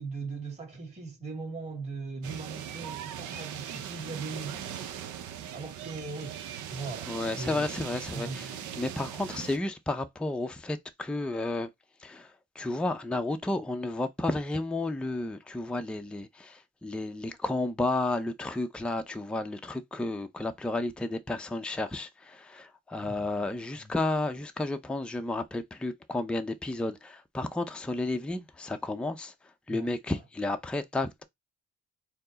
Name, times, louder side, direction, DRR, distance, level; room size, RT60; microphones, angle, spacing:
voice 1, 0.0-4.7 5.5-6.4 6.7-7.7 8.1-8.5 23.0-23.2 23.7-23.9 29.7-29.9, right 3 dB, 20° right, 2.0 m, -39 dB
sound 1, 2.2-9.6, right 9 dB, 75° right, 0.6 m, -40 dB
voice 2, 7.1-11.7 12.0-31.2, left 2 dB, 5° left, 0.5 m, -32 dB
4.4 x 2.0 x 3.9 m
cardioid pair, 90°, 30 cm